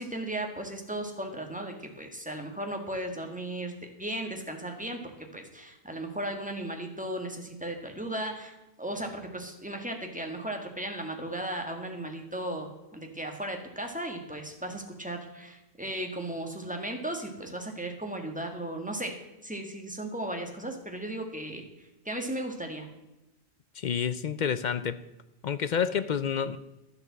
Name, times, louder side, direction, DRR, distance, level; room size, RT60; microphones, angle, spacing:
voice 1, 0.0-19.1 19.4-21.6 22.0-22.9, right 1 dB, 5° right, 1.7 m, -36 dB
voice 2, 23.8-25.0 25.4-26.6, left 7 dB, 55° left, 0.6 m, -29 dB
12.0 x 7.9 x 7.4 m
omnidirectional pair, 1.1 m